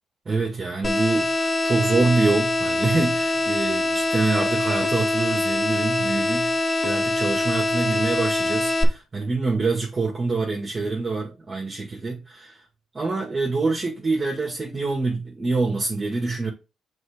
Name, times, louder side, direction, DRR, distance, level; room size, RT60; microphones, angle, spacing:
voice 1, 0.3-12.6 12.9-16.5, right 3 dB, 30° right, 2.0 m, -25 dB
sound 1, 0.8-8.8, left 2 dB, 30° left, 1.6 m, -24 dB
6.5 x 4.1 x 4.5 m
cardioid pair, 90°, 0 cm